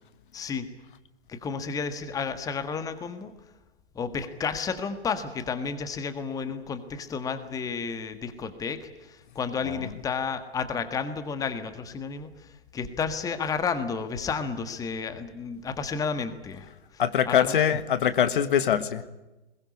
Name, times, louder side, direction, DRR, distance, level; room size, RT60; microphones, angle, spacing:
voice 1, 0.3-0.7 1.3-3.3 3.9-17.6, left 5 dB, 10° left, 11 dB, 1.5 m, -32 dB
voice 2, 17.0-19.0, left 9 dB, 50° left, 13 dB, 1.6 m, -23 dB
22.0 x 20.0 x 9.6 m, 1.0 s
figure-of-eight pair, 125°, 32 cm